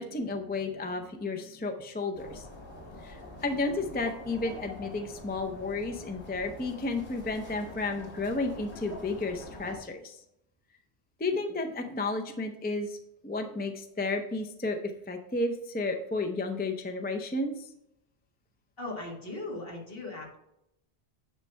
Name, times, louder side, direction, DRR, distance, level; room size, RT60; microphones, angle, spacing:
voice 1, 0.0-2.5 3.0-10.2 11.2-13.0 13.2-17.7, left 2 dB, 15° left, 4 dB, 0.4 m, -32 dB
sound 1, 2.1-9.8, left 2 dB, 85° left, 2.1 m, -45 dB
voice 2, 18.8-20.4, left 2 dB, 55° left, -2 dB, 2.2 m, -38 dB
9.6 x 3.3 x 5.5 m, 0.81 s
omnidirectional pair, 1.1 m